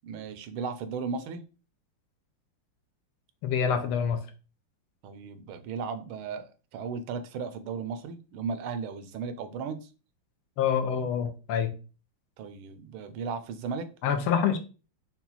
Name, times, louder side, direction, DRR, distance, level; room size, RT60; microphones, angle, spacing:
voice 1, 0.0-1.4 5.0-9.9 12.4-13.9, right 5 dB, 80° right, 1.5 m, -36 dB
voice 2, 3.4-4.2 10.6-11.7 14.0-14.6, left 7 dB, 85° left, 1.6 m, -26 dB
5.7 x 2.3 x 4.0 m
omnidirectional pair, 2.3 m